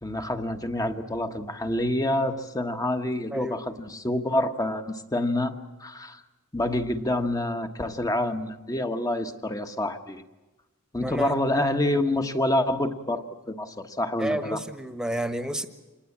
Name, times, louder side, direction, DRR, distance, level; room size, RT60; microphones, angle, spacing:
voice 1, 0.0-5.5 5.8-6.2 6.5-10.2 10.9-14.6, left 1 dB, 15° left, 7 dB, 1.3 m, -27 dB
voice 2, 11.0-11.3 14.2-15.7, right 1 dB, 5° right, 10 dB, 1.4 m, -30 dB
26.5 x 20.0 x 8.6 m, 1.1 s
head